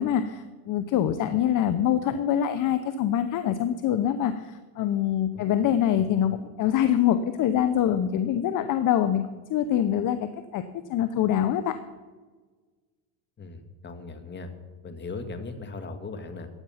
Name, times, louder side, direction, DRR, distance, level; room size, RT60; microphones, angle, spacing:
voice 1, 0.0-9.2 9.5-10.2 10.5-11.8, left 10 dB, 45° left, 12 dB, 0.8 m, -24 dB
voice 2, 13.4-14.5 14.8-16.5, left 3 dB, 25° left, 8 dB, 1.7 m, -38 dB
15.5 x 10.5 x 5.7 m, 1.3 s
supercardioid pair, 125°, 45 cm